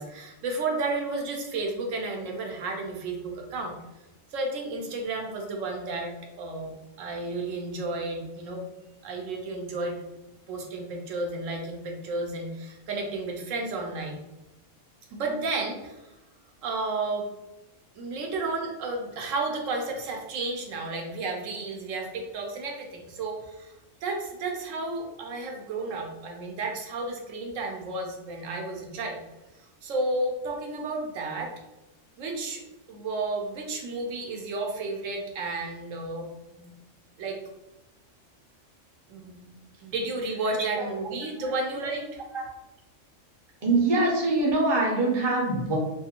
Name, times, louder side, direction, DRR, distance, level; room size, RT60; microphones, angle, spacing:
voice 1, 0.0-3.7 4.3-8.6 9.0-10.0 10.5-14.2 15.1-16.0 16.6-17.3 18.0-23.7 24.0-29.2 29.8-31.5 32.2-32.6 32.9-36.7 37.2-37.4 39.1-39.5 39.8-42.2, right 2 dB, 80° right, 1 dB, 1.0 m, -32 dB
voice 2, 43.6-45.8, right 2 dB, 30° right, -2 dB, 0.5 m, -23 dB
2.6 x 2.4 x 2.8 m, 1.0 s
omnidirectional pair, 1.3 m